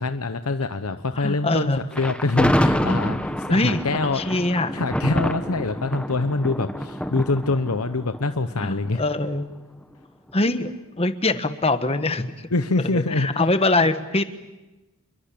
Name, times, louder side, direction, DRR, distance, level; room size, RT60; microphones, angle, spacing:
voice 1, 0.0-4.2 4.5-9.0 12.5-13.4, left 3 dB, 80° left, 9 dB, 1.0 m, -25 dB
voice 2, 1.1-1.8 3.5-4.8 8.6-9.5 10.3-12.5 12.8-14.2, left 2 dB, 25° left, 10 dB, 1.4 m, -23 dB
Thunder, 1.9-9.1, equal, 5° left, 1.0 m, -26 dB
29.0 x 22.5 x 8.7 m, 1.1 s
head